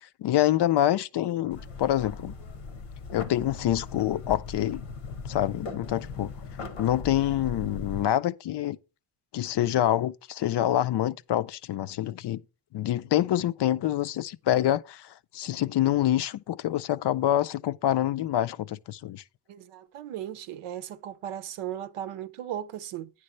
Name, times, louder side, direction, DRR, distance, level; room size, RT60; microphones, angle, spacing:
voice 1, 0.0-2.3 3.1-4.8 5.2-6.3 6.8-8.8 9.3-12.4 12.7-19.2, left 12 dB, 55° left, 0.5 m, -26 dB
sound 1, 1.5-8.1, left 4 dB, 85° left, 1.0 m, -39 dB
voice 2, 19.5-23.1, right 11 dB, 85° right, 0.7 m, -37 dB
9.5 x 3.3 x 6.6 m
supercardioid pair, 50°, 50 cm